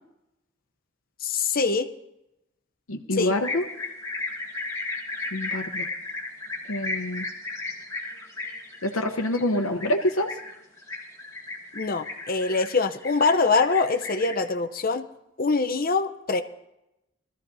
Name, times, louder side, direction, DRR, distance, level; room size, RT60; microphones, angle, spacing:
voice 1, 1.2-1.9 3.1-3.4 11.7-15.1 15.4-16.4, left 4 dB, 45° left, 9 dB, 0.7 m, -24 dB
voice 2, 2.9-3.6 5.3-5.9 6.7-7.2 8.8-10.4, left 1 dB, 90° left, 2 dB, 0.9 m, -26 dB
sound 1, 3.4-14.3, left 3 dB, 15° left, 2.2 m, -34 dB
20.5 x 14.0 x 2.7 m, 0.91 s
head